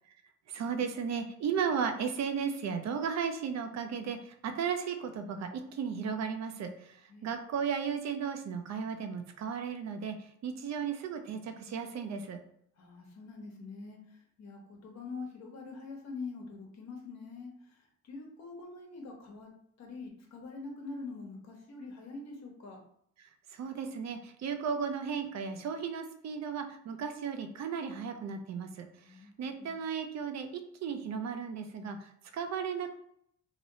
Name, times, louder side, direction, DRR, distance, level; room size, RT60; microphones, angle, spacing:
voice 1, 0.5-12.4 23.2-28.9 29.4-32.9, right 6 dB, 60° right, 6 dB, 0.6 m, -35 dB
voice 2, 12.8-14.0 14.4-17.8 18.0-19.5 19.8-22.8 29.0-29.7, left 3 dB, 60° left, 0 dB, 1.1 m, -44 dB
3.0 x 2.9 x 2.7 m, 0.69 s
cardioid pair, 90°, 30 cm